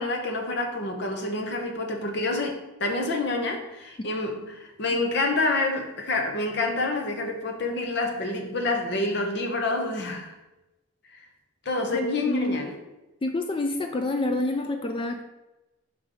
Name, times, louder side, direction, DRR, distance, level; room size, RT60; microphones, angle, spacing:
voice 1, 0.0-10.3 11.6-12.8, left 2 dB, 55° left, 3 dB, 0.8 m, -28 dB
voice 2, 11.9-12.7 13.2-15.2, left 2 dB, 25° left, 5 dB, 0.3 m, -28 dB
5.1 x 3.6 x 5.2 m, 1.0 s
head